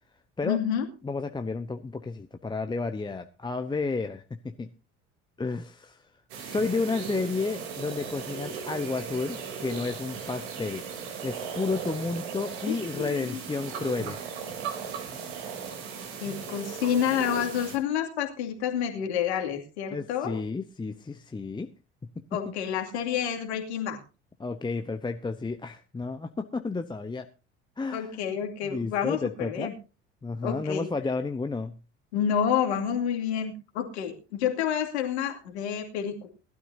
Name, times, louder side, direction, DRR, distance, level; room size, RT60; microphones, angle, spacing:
voice 1, 0.4-0.8 12.7-13.4 16.2-20.4 22.3-24.0 27.9-29.7 30.4-30.9 32.1-36.3, left 9 dB, 70° left, 3 dB, 2.6 m, -29 dB
voice 2, 1.0-4.7 5.4-6.0 6.4-10.8 11.2-14.2 19.9-21.7 22.4-22.5 24.4-27.3 27.8-28.2 28.6-29.7 30.2-31.8, left 4 dB, 15° left, 7 dB, 0.9 m, -31 dB
sound 1, 6.3-17.8, right 6 dB, 65° right, 3.3 m, -37 dB
20.0 x 12.5 x 2.8 m, 0.31 s
figure-of-eight pair, 55°, 35 cm